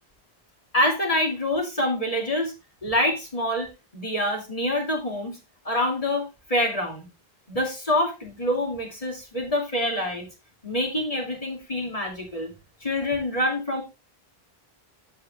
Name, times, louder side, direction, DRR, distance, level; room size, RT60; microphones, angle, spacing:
voice 1, 0.7-2.5 2.8-5.4 5.6-7.1 7.5-10.3 10.6-12.5 12.8-13.8, left 1 dB, 35° left, 1 dB, 2.6 m, -26 dB
13.5 x 4.8 x 3.3 m, 0.26 s
omnidirectional pair, 1.0 m